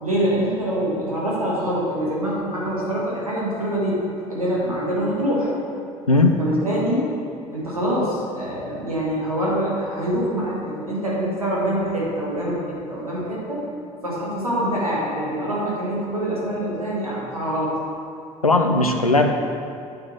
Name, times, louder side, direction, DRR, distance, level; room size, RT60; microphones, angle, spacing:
voice 1, 0.0-4.0 4.3-5.5 6.4-7.1 7.5-13.6 14.0-17.8, right 1 dB, 85° right, -5 dB, 1.6 m, -25 dB
voice 2, 6.1-6.4 18.4-19.3, left 2 dB, 90° left, 4 dB, 0.5 m, -17 dB
8.6 x 3.8 x 5.9 m, 2.5 s
figure-of-eight pair, 55°, 18 cm